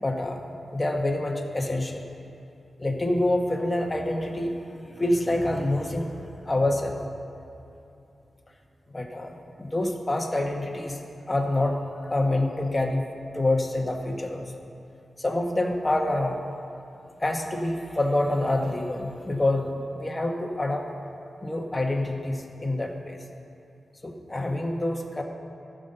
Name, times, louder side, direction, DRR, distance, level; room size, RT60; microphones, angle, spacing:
voice 1, 0.0-2.0 2.8-7.0 8.9-11.0 11.3-13.0 13.3-14.5 15.2-16.4 17.2-20.9 21.4-23.2 24.0-25.2, left 1 dB, 20° left, 1 dB, 1.2 m, -27 dB
13.5 x 5.5 x 6.6 m, 2.9 s
wide cardioid pair, 90°, 0 cm